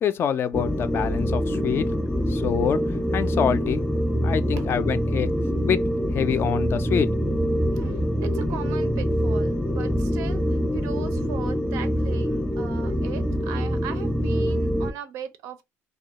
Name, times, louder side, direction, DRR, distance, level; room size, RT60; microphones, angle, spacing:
voice 1, 0.0-1.9 2.3-2.8 3.1-3.8 4.2-5.3 5.6-5.8 6.1-7.1, left 8 dB, 45° left, 0.3 m, -25 dB
sound 1, 0.5-14.9, equal, 5° left, 0.6 m, -25 dB
voice 2, 7.7-10.5 10.7-15.6, right 9 dB, 80° right, 0.5 m, -39 dB
2.3 x 2.1 x 2.8 m
cardioid pair, 105°, 5 cm